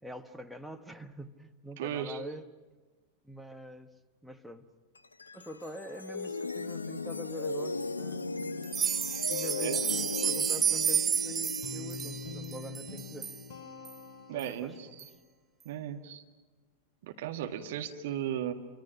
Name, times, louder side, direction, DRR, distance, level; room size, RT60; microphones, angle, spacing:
voice 1, 0.0-2.5 3.2-3.9 4.2-4.7 5.3-8.7 9.3-13.3 14.3-15.1, right 1 dB, ahead, 10 dB, 1.3 m, -45 dB
voice 2, 1.8-2.2 9.6-9.8 14.3-15.1 15.7-16.2 17.0-18.5, right 10 dB, 55° right, 4 dB, 2.0 m, -36 dB
sound 1, 5.0-14.2, left 3 dB, 80° left, 0.6 m, -38 dB
sound 2, 8.6-13.4 13.9-14.0 14.4-14.5 15.0-15.1, right 8 dB, 25° right, 0.7 m, -31 dB
Guitar, 11.6-14.9, left 4 dB, 50° left, 2.7 m, -46 dB
28.0 x 25.5 x 6.0 m, 1.4 s
figure-of-eight pair, 90°, 0 cm